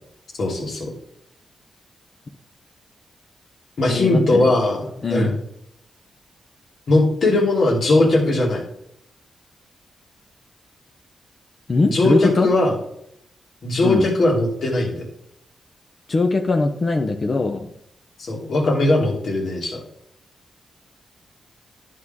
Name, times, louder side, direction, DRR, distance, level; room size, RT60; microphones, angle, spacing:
voice 1, 0.4-0.9 3.8-5.3 6.9-8.6 11.9-12.8 13.6-15.1 18.2-19.8, left 2 dB, 70° left, -1 dB, 2.4 m, -19 dB
voice 2, 3.9-4.5 5.0-5.3 11.7-12.5 13.8-14.1 16.1-17.7, left 3 dB, 45° left, 5 dB, 0.7 m, -21 dB
10.5 x 4.8 x 3.6 m, 0.73 s
cardioid pair, 70°, 0 cm